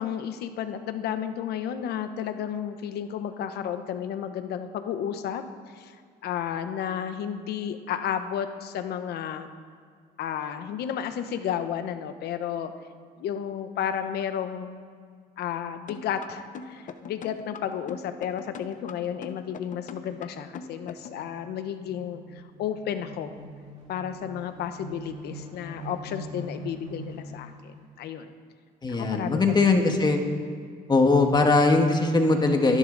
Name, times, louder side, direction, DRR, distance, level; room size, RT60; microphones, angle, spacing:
voice 1, 0.0-9.5 10.2-12.7 13.2-14.8 15.4-23.3 23.9-28.3 28.9-30.0, left 9 dB, 70° left, 9 dB, 1.1 m, -32 dB
sound 1, 15.9-21.2, left 6 dB, 50° left, 1.0 m, -40 dB
sound 2, 18.1-27.8, right 2 dB, 40° right, 4.2 m, -44 dB
voice 2, 28.8-30.2 30.9-32.8, left 3 dB, 25° left, 4 dB, 1.7 m, -20 dB
23.0 x 10.5 x 4.0 m, 2.1 s
cardioid pair, 110°, 17 cm